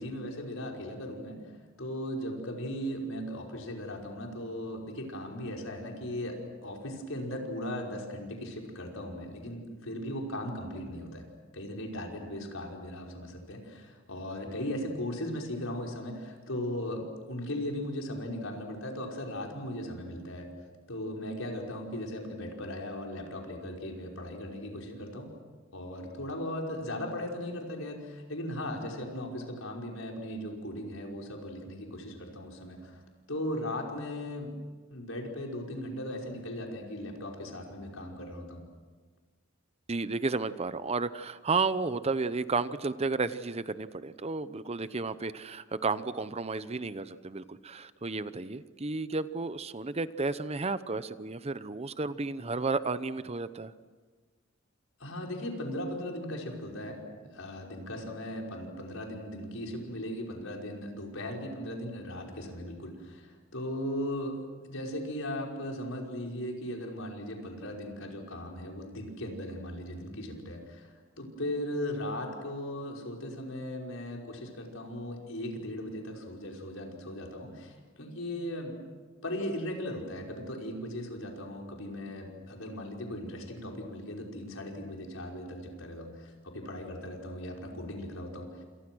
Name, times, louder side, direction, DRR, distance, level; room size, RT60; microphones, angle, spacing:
voice 1, 0.0-1.4 1.8-11.3 11.5-20.5 20.9-25.3 25.7-33.0 33.3-34.5 34.9-38.6 55.0-70.9 71.2-78.7 79.2-88.6, left 1 dB, 80° left, 0 dB, 5.4 m, -38 dB
voice 2, 39.9-53.7, right 3 dB, 30° right, 14 dB, 0.8 m, -32 dB
29.0 x 27.0 x 6.3 m, 1.4 s
head